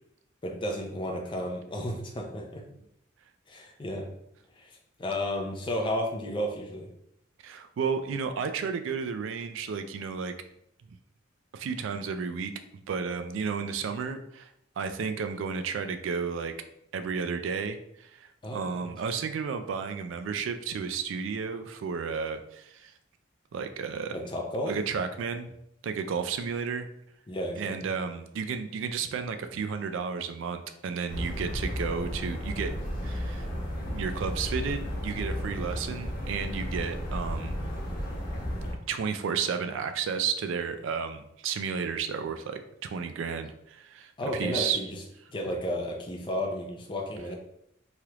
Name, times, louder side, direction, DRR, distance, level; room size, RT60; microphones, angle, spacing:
voice 1, 0.4-2.6 3.5-4.1 4.6-6.9 18.4-18.6 24.1-24.7 27.3-27.7 44.2-44.9 45.3-47.4, left 1 dB, 25° left, 1 dB, 0.4 m, -32 dB
voice 2, 7.4-10.3 11.5-14.5 14.8-16.5 16.9-22.9 23.5-24.2 24.7-25.5 25.8-26.9 27.6-32.7 33.0-33.5 33.8-37.6 38.9-44.8, right 6 dB, 70° right, 8 dB, 0.3 m, -32 dB
sound 1, 31.1-38.7, equal, 45° left, 0.8 m, -33 dB
3.2 x 2.4 x 2.9 m, 0.77 s
head